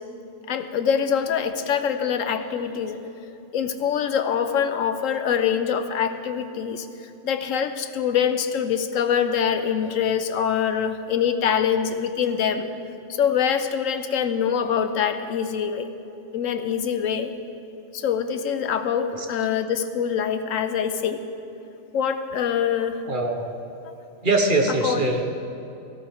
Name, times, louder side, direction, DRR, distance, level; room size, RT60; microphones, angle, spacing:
voice 1, 0.5-3.0 3.5-6.9 7.2-12.7 13.1-15.9 16.3-17.3 17.9-21.2 21.9-23.0 24.8-25.1, left 8 dB, 85° left, 9 dB, 1.1 m, -24 dB
voice 2, 23.0-23.5 24.2-25.2, right 2 dB, 40° right, 3 dB, 1.2 m, -22 dB
18.0 x 15.0 x 3.6 m, 2.9 s
omnidirectional pair, 1.3 m